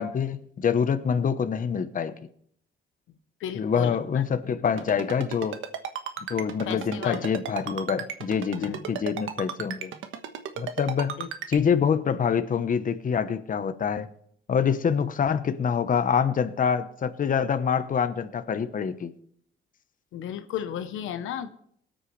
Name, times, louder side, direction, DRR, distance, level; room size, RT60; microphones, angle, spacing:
voice 1, 0.0-2.1 3.6-5.6 6.3-9.9 10.6-11.2 11.5-14.1 14.5-19.1, left 7 dB, 40° left, 11 dB, 1.0 m, -26 dB
voice 2, 3.4-4.2 6.6-7.3 8.5-8.9 11.2-11.3 20.1-21.5, left 10 dB, 85° left, 10 dB, 0.9 m, -34 dB
Ringtone, 4.8-11.6, right 8 dB, 80° right, 1.3 m, -34 dB
19.5 x 8.9 x 3.3 m, 0.64 s
cardioid pair, 90°, 20 cm